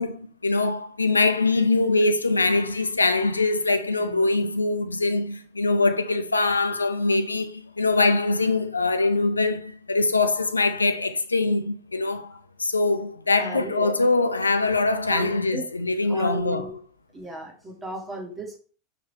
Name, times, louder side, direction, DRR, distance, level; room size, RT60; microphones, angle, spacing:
voice 1, 0.0-16.7, left 3 dB, 85° left, 0.5 m, -23 dB
voice 2, 4.0-4.5 13.4-13.9 15.1-15.7 16.0-16.7 17.1-18.6, right 1 dB, 15° right, 2.4 m, -35 dB
5.8 x 5.1 x 4.3 m
figure-of-eight pair, 85°, 0 cm